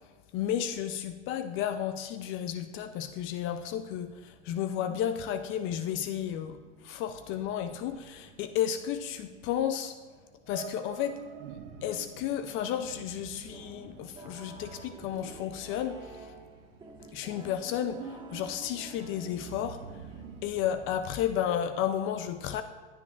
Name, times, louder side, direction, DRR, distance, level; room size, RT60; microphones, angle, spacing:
voice 1, 0.3-10.0 10.5-11.2 11.8-16.3 17.1-19.8 20.4-22.6, left 10 dB, 35° left, 10 dB, 0.5 m, -32 dB
sound 1, 3.5-21.0, right 7 dB, 55° right, 0.8 m, -50 dB
sound 2, 13.5-20.9, right 2 dB, 15° right, 1.5 m, -50 dB
14.5 x 9.6 x 2.4 m, 1.4 s
hypercardioid pair, 105°, 35 cm